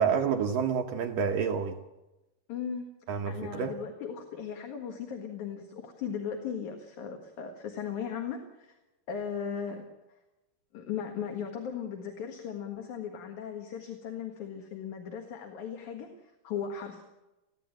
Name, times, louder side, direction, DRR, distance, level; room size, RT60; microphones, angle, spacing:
voice 1, 0.0-1.8 3.1-3.7, right 6 dB, 70° right, 4 dB, 2.4 m, -28 dB
voice 2, 2.5-2.9 3.3-8.7 9.1-9.8 10.7-17.0, left 7 dB, 55° left, 3 dB, 2.8 m, -37 dB
22.5 x 16.5 x 9.1 m, 1.0 s
omnidirectional pair, 4.6 m